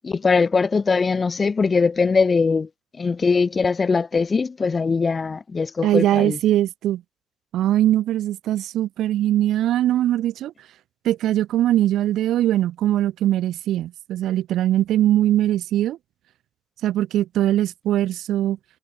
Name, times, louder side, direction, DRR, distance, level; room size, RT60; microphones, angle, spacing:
voice 1, 0.0-2.7 3.0-6.4, left 4 dB, 35° left, 0.4 m, -21 dB
voice 2, 5.8-7.0 7.5-10.5 11.0-16.0 16.8-18.6, right 13 dB, 80° right, 0.6 m, -21 dB
cardioid pair, 90°, 0 cm